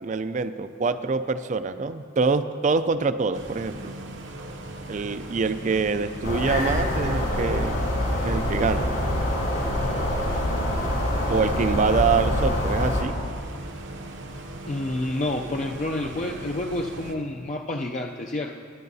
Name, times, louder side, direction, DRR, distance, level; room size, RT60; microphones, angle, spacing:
voice 1, 0.0-3.9 4.9-7.8 8.2-8.9 11.3-13.1, right 4 dB, 40° right, 12 dB, 0.3 m, -25 dB
sound 1, 3.3-17.2, right 1 dB, 70° right, 0.9 m, -39 dB
sound 2, 6.2-13.0, left 1 dB, 70° left, 2.6 m, -25 dB
voice 2, 14.7-18.6, left 2 dB, 35° left, 1 dB, 0.4 m, -29 dB
21.0 x 9.4 x 2.7 m, 2.3 s
head